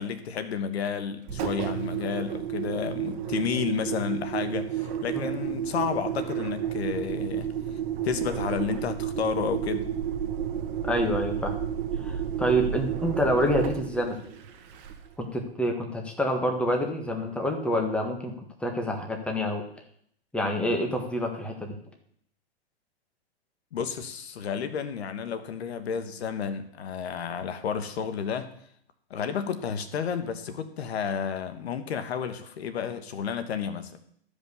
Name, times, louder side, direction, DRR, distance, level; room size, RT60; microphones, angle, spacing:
voice 1, 0.0-9.9 23.7-28.5 29.1-33.9, left 7 dB, 70° left, 10 dB, 1.3 m, -31 dB
Engine, 1.2-15.2, right 9 dB, 40° right, 1.5 m, -31 dB
voice 2, 10.8-11.5 12.0-14.2 15.2-18.3 18.6-19.6 20.3-21.8, equal, 5° left, 2 dB, 1.5 m, -27 dB
13.0 x 5.3 x 6.9 m, 0.66 s
hypercardioid pair, 130°, 33 cm